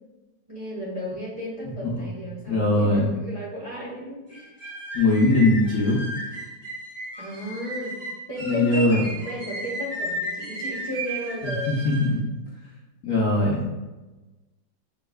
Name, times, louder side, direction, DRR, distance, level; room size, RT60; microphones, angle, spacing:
voice 1, 0.5-4.5 7.2-7.9 8.3-11.7, left 1 dB, 20° right, -8 dB, 1.2 m, -34 dB
voice 2, 2.5-3.1 4.9-6.0 8.4-9.0 11.4-12.3 13.0-13.8, left 2 dB, 55° left, -5 dB, 1.0 m, -21 dB
sound 1, 4.3-12.1, right 1 dB, 40° right, 1.8 m, -34 dB
7.0 x 3.3 x 2.3 m, 1.1 s
omnidirectional pair, 2.0 m